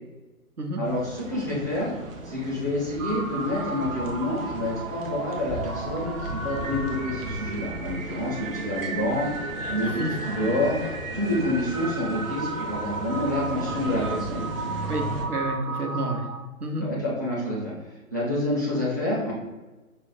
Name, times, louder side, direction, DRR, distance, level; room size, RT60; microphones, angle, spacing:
voice 1, 0.8-1.9 2.2-9.3 9.7-10.0 10.3-10.8 11.1-14.5 15.9-16.0 16.8-19.3, left 1 dB, 15° left, -7 dB, 0.5 m, -28 dB
sound 1, 0.8-15.3, right 1 dB, 40° right, 0.7 m, -36 dB
sound 2, 3.0-16.4, right 3 dB, 65° right, 0.9 m, -35 dB
voice 2, 14.9-16.3 16.6-16.9, right 1 dB, 90° right, 2 dB, 1.0 m, -29 dB
5.4 x 2.1 x 4.2 m, 1.1 s
figure-of-eight pair, 135°, 44 cm